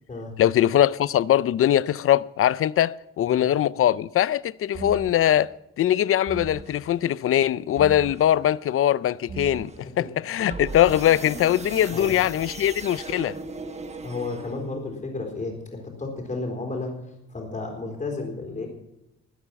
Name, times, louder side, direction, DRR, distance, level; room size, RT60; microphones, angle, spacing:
voice 1, 0.4-5.5 5.8-13.4, left 11 dB, 50° left, 0.5 m, -21 dB
sound 1, 4.7-5.3 6.3-6.8 7.8-8.3 9.3-9.8 10.5-14.9, right 4 dB, 20° right, 1.2 m, -37 dB
voice 2, 14.0-18.7, left 3 dB, 25° left, 4.0 m, -33 dB
21.0 x 8.9 x 5.8 m
wide cardioid pair, 170°, 29 cm